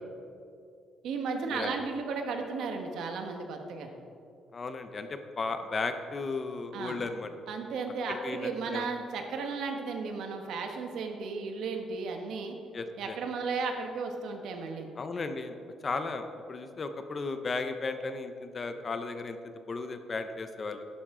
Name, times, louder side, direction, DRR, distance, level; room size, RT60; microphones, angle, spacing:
voice 1, 1.0-3.9 6.7-7.0 7.5-12.5 13.0-14.9, right 4 dB, 70° right, 4 dB, 1.3 m, -34 dB
voice 2, 4.5-7.3 8.1-8.9 12.7-13.2 15.0-15.5 15.8-16.2 16.5-19.4 19.7-20.8, left 3 dB, 30° left, 8 dB, 0.6 m, -35 dB
12.0 x 10.0 x 3.8 m, 2.5 s
cardioid pair, 150°, 0 cm